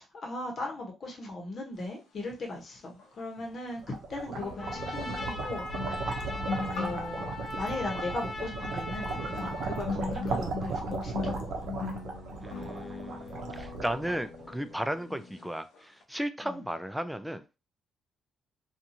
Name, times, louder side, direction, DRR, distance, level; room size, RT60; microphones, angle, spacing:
voice 1, 0.0-5.6 5.9-11.7 12.3-12.7 15.1-15.2 16.4-16.6, left 2 dB, 50° left, 0.9 m, -38 dB
sound 1, 3.0-3.1 4.4-15.5 15.7-16.0, left 5 dB, 90° left, 0.7 m, -40 dB
sound 2, 3.6-14.7, right 4 dB, 75° right, 0.6 m, -36 dB
Trumpet, 4.6-9.9, left 1 dB, 10° left, 1.4 m, -39 dB
voice 2, 12.4-17.4, right 1 dB, 5° right, 0.3 m, -35 dB
2.7 x 2.3 x 2.6 m
cardioid pair, 90°, 0 cm